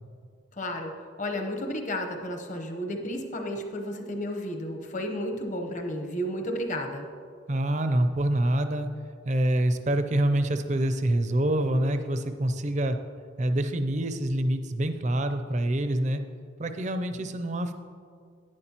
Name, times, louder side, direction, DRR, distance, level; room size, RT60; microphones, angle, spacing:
voice 1, 0.5-0.9 1.2-7.1, equal, 40° left, 3 dB, 0.9 m, -32 dB
voice 2, 7.5-8.9 9.2-13.0 13.4-16.2 16.6-17.7, right 1 dB, 35° right, 7 dB, 0.5 m, -26 dB
11.0 x 9.6 x 2.9 m, 2.2 s
head